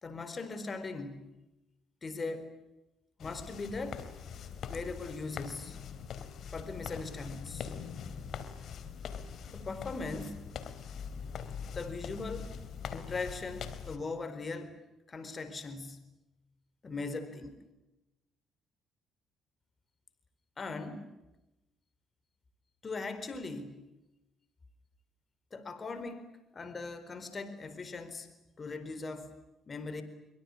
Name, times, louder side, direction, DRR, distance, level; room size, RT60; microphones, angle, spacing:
voice 1, 0.0-1.4 2.0-2.6 3.2-4.0 4.7-5.8 6.5-7.7 9.5-10.4 11.7-12.6 12.9-14.8 15.1-16.1 16.8-17.6 20.6-21.1 22.8-23.9 25.5-26.3 26.5-28.3 28.6-29.3 29.7-30.0, left 3 dB, 35° left, 11 dB, 4.3 m, -39 dB
sound 1, 3.2-14.0, left 7 dB, 65° left, 3.6 m, -42 dB
25.0 x 24.0 x 9.8 m, 0.96 s
supercardioid pair, 65°, 0 cm